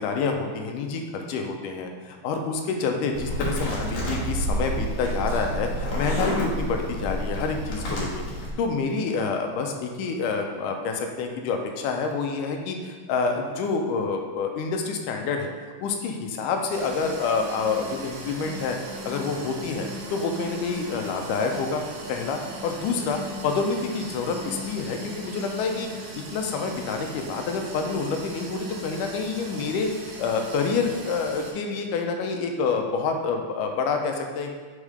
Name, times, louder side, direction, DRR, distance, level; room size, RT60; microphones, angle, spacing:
voice 1, 0.0-8.2 8.6-15.5 15.8-18.8 19.0-21.8 22.1-25.9 26.2-29.9 30.2-34.6, left 4 dB, 80° left, 3 dB, 2.1 m, -28 dB
sound 1, 3.1-8.5, equal, 55° left, 2.3 m, -29 dB
sound 2, 16.7-31.5, right 1 dB, 70° right, 2.2 m, -38 dB
5.4 x 4.9 x 5.0 m, 1.4 s
omnidirectional pair, 3.7 m